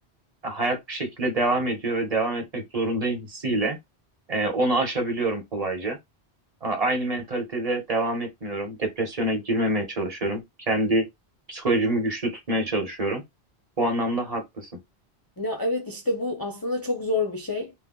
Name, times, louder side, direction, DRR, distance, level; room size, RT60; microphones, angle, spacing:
voice 1, 0.4-3.8 4.3-6.0 6.6-10.4 10.7-11.1 11.5-13.2 13.8-14.7, right 1 dB, 35° right, 1.0 m, -26 dB
voice 2, 15.4-17.7, left 2 dB, 30° left, 0.4 m, -27 dB
2.4 x 2.2 x 3.7 m
omnidirectional pair, 1.1 m